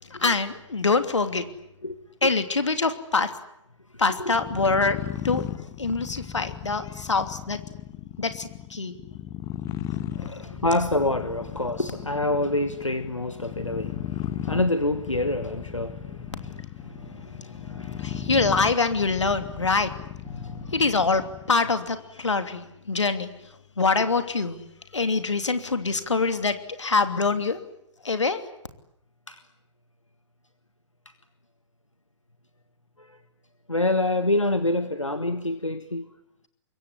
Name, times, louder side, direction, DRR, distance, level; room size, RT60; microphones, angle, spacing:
voice 1, 0.0-1.5 2.2-3.3 4.0-5.5 5.8-7.6 8.2-9.0 10.3-10.4 18.0-19.9 20.7-23.3 23.8-24.6 24.9-27.6 28.0-28.4, left 4 dB, 75° left, 9 dB, 3.0 m, -25 dB
sound 1, 4.3-21.5, left 11 dB, 20° left, 1.3 m, -36 dB
voice 2, 10.1-18.3 20.3-20.7 29.3-29.4 33.0-33.2 33.7-36.1, left 2 dB, 90° left, 10 dB, 1.6 m, -27 dB
26.0 x 22.5 x 10.0 m, 0.81 s
figure-of-eight pair, 120°, 16 cm